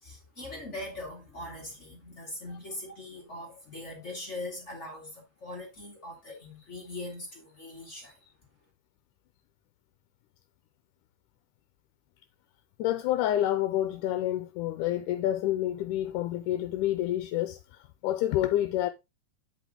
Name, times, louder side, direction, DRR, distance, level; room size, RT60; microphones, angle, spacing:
voice 1, 0.0-8.2, left 1 dB, 25° left, 2.0 m, -41 dB
voice 2, 12.8-17.6 18.0-18.9, left 13 dB, 80° left, 2.1 m, -28 dB
8.4 x 5.1 x 3.7 m
omnidirectional pair, 3.7 m